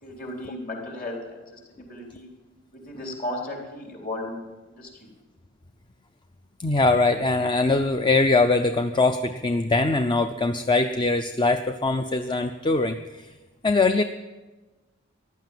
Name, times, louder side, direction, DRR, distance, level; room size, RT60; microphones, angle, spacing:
voice 1, 0.0-2.3 2.9-4.4 4.7-5.1, left 1 dB, 45° left, 0 dB, 3.8 m, -35 dB
voice 2, 6.6-13.3 13.6-14.0, left 3 dB, 25° left, 9 dB, 0.5 m, -22 dB
15.0 x 11.5 x 7.7 m, 1.2 s
head